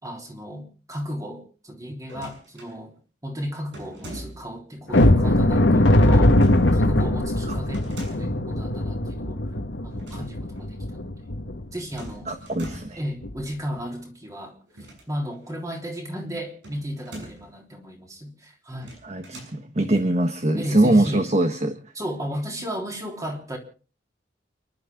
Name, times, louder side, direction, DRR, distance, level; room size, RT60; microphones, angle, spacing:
voice 1, 0.0-2.9 3.2-6.4 6.7-9.4 9.8-11.3 11.7-12.3 13.0-14.6 15.1-19.0 20.5-21.2 21.9-23.6, equal, 20° right, 2 dB, 3.4 m, -34 dB
sound 1, 2.0-2.8 3.7-4.6 6.3-6.7 7.7-8.4 9.9-10.3 10.6-10.7 12.0-13.1 14.7-15.5 16.6-17.5 18.7-19.6, right 1 dB, 85° right, 7.1 m, -42 dB
sound 2, 4.9-11.6 12.0-12.2 12.6-12.7 13.2-13.4, left 1 dB, 85° left, 1.9 m, -20 dB
voice 2, 12.3-13.0 19.0-21.8, right 1 dB, 35° right, 7 dB, 1.4 m, -22 dB
29.5 x 11.5 x 3.8 m, 0.37 s
head